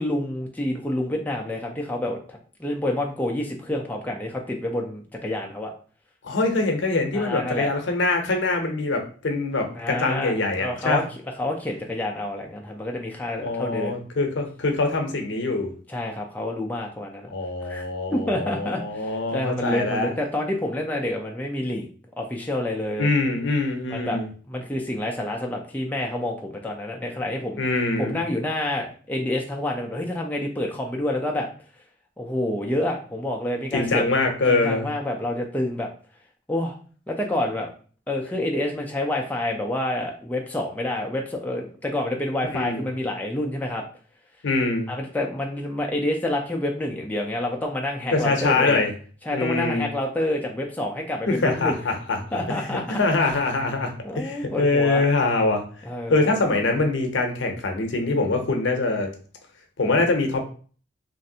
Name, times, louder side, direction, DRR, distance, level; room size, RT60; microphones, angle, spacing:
voice 1, 0.0-5.7 7.1-7.7 9.7-10.3 10.6-14.0 15.9-17.3 17.6-17.9 18.1-21.8 22.2-23.1 23.9-24.2 24.5-27.6 28.0-31.5 32.2-34.1 34.5-35.9 36.5-36.8 37.1-37.7 38.1-43.8 44.9-48.8 49.2-51.8 52.3-53.0 54.0-55.0 55.8-56.4, left 1 dB, 10° left, 0 dB, 0.3 m, -28 dB
voice 2, 6.2-11.0 13.4-15.7 17.3-20.1 23.0-24.3 27.6-28.2 33.7-34.9 42.5-42.9 44.4-44.9 48.1-48.9 49.3-49.9 51.3-55.6 56.1-59.1 59.8-60.5, left 3 dB, 85° left, 4 dB, 0.6 m, -24 dB
3.1 x 2.5 x 2.7 m, 0.42 s
head